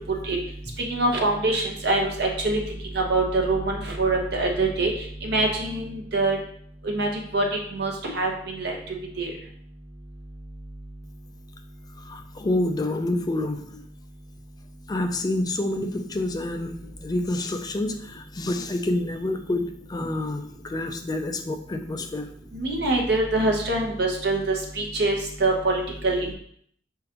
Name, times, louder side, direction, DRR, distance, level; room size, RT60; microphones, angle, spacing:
voice 1, 0.9-2.6 2.9-4.9 5.2-6.4 6.8-7.4 7.7-9.3 22.5-26.4, right 2 dB, 65° right, 1 dB, 1.0 m, -24 dB
voice 2, 12.1-13.6 14.9-16.7 17.0-22.3, left 1 dB, 20° left, 6 dB, 0.4 m, -28 dB
4.8 x 3.7 x 2.9 m, 0.64 s
head